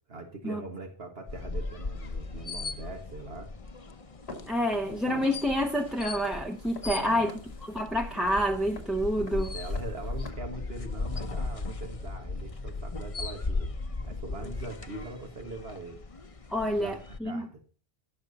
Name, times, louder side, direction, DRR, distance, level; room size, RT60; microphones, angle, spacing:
voice 1, 0.1-3.5 6.8-7.4 9.2-13.7 14.0-16.0 16.7-17.6, right 3 dB, 75° right, 1.9 m, -42 dB
sound 1, 1.3-17.2, left 3 dB, 35° left, 0.9 m, -37 dB
Walk footsteps, 4.3-10.3, left 3 dB, 85° left, 2.3 m, -47 dB
voice 2, 4.5-7.3 7.7-9.5 16.5-17.5, equal, ahead, 0.7 m, -28 dB
16.5 x 6.8 x 4.1 m
omnidirectional pair, 1.0 m